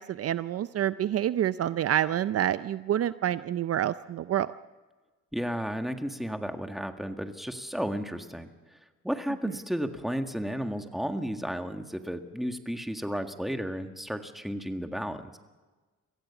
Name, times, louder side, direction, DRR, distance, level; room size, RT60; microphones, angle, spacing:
voice 1, 0.0-4.5, right 11 dB, 55° right, 14 dB, 0.5 m, -27 dB
voice 2, 5.3-8.5 9.0-15.4, equal, ahead, 6 dB, 1.7 m, -33 dB
24.5 x 15.5 x 7.1 m, 1.3 s
cardioid pair, 90°, 30 cm